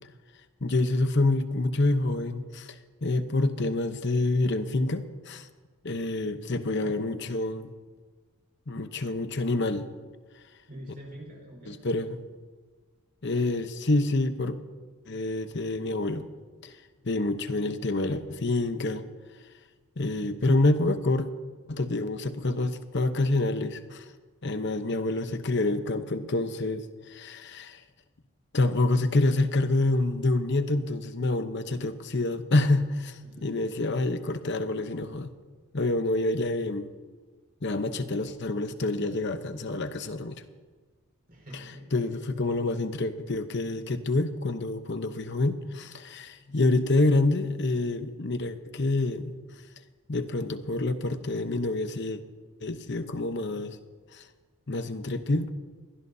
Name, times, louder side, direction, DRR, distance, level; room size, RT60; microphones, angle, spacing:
voice 1, 0.6-5.5 5.8-7.7 8.7-9.9 11.7-12.2 13.2-14.6 15.1-16.3 16.6-16.7 17.0-19.0 20.0-21.3 21.7-24.1 24.4-27.8 28.5-35.3 35.7-36.9 37.6-40.4 41.9-49.4 50.1-52.2 52.6-53.8 54.1-54.2 54.7-55.5, left 2 dB, 50° left, 9 dB, 0.9 m, -27 dB
voice 2, 10.7-11.8 33.2-33.7 41.3-41.9, equal, 45° right, -2 dB, 5.0 m, -45 dB
22.5 x 16.5 x 2.7 m, 1.4 s
head